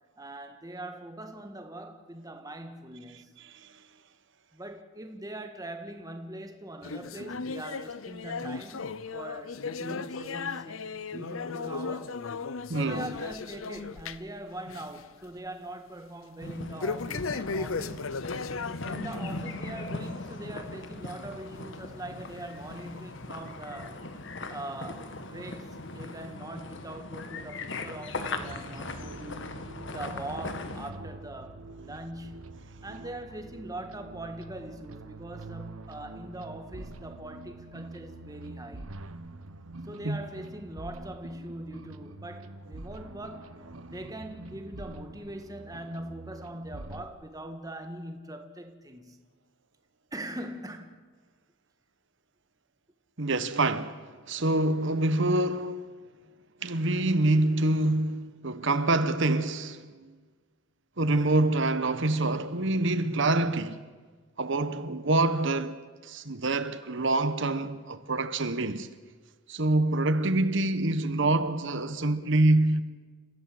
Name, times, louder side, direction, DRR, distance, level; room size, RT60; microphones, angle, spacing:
voice 1, 0.2-3.4 4.5-12.3 12.7-18.1 18.8-24.0 24.5-29.5 29.9-32.5 32.8-39.0 39.9-43.5 43.9-49.2 50.1-51.0, right 1 dB, 15° right, 1.7 m, -42 dB
sound 1, 6.8-14.4 14.7-15.0 15.4-15.5 16.8-19.5 19.9-20.1 20.7-20.8 21.7-21.8 22.6-22.7, left 4 dB, 75° left, 0.7 m, -36 dB
voice 2, 12.7-13.0 40.0-40.2 53.2-56.0 56.6-60.1 61.0-63.8 64.4-68.9 69.5-72.8, right 2 dB, 60° right, 1.2 m, -26 dB
sound 2, 16.4-30.9, left 2 dB, 60° left, 1.6 m, -39 dB
sound 3, 28.1-47.1, right 2 dB, 85° right, 1.3 m, -45 dB
29.5 x 15.5 x 7.8 m
head